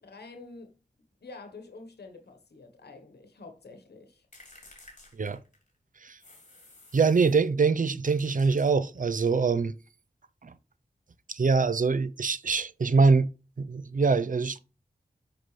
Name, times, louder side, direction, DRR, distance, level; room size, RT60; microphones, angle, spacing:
voice 1, 0.0-0.7 1.2-4.3, left 3 dB, 90° left, 1.2 m, -47 dB
sound 1, 4.3-5.8 6.2-7.5 8.0-9.2, left 2 dB, 50° left, 3.0 m, -54 dB
voice 2, 6.9-9.7 10.4-10.5 11.3-13.3 13.6-14.6, right 4 dB, 55° right, 0.6 m, -24 dB
7.6 x 5.9 x 3.3 m
wide cardioid pair, 50°, 16 cm